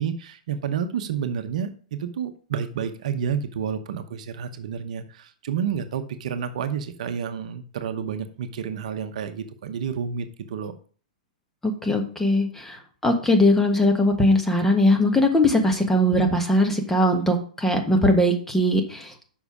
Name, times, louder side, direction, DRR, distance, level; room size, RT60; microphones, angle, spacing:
voice 1, 0.0-10.7, right 7 dB, 60° right, 9 dB, 0.9 m, -30 dB
voice 2, 11.6-19.3, left 1 dB, 10° left, 4 dB, 1.5 m, -20 dB
7.0 x 5.5 x 4.9 m, 0.42 s
hypercardioid pair, 110°, 4 cm